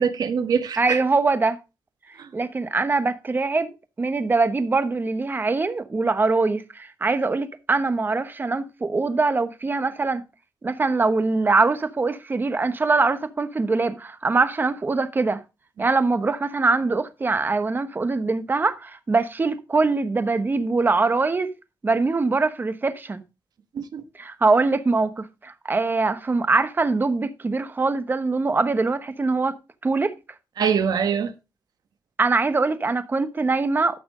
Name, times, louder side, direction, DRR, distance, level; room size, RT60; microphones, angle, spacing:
voice 1, 0.0-1.0 2.2-2.3 15.8-15.9 23.7-24.0 30.6-31.3, right 7 dB, 70° right, 1.2 m, -24 dB
voice 2, 0.8-1.6 2.3-10.2 10.6-15.4 15.8-21.5 21.8-23.2 24.2-29.5 29.8-30.1 32.2-34.0, right 3 dB, 30° right, 1.0 m, -23 dB
13.0 x 6.0 x 3.7 m
cardioid pair, 110°, 7 cm